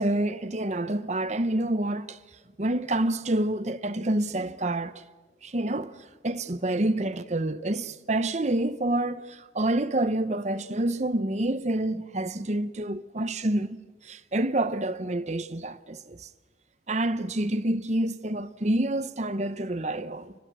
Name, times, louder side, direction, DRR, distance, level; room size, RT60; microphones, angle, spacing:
voice 1, 0.0-2.2 2.6-5.0 5.4-5.9 6.2-13.8 14.0-16.3 16.9-20.3, right 1 dB, 40° right, 0.9 m, -28 dB
29.0 x 25.0 x 6.3 m
head